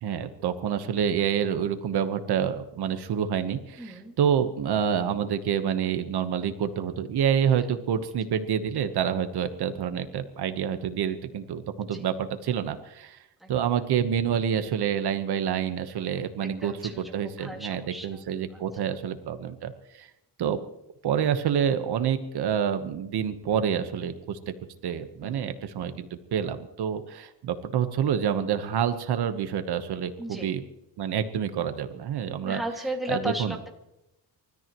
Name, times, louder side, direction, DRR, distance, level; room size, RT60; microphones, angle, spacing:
voice 1, 0.0-13.2 13.5-20.1 20.4-20.6 21.0-24.5 24.8-30.6 31.0-32.6 33.1-33.6, right 8 dB, 70° right, 9 dB, 1.2 m, -28 dB
voice 2, 3.8-4.1 11.9-12.1 13.4-13.5 16.4-18.2 18.5-19.0 25.2-25.5 30.2-30.6 32.4-33.7, right 1 dB, ahead, 0 dB, 2.1 m, -36 dB
29.5 x 13.5 x 3.0 m, 0.88 s
cardioid pair, 170°, 41 cm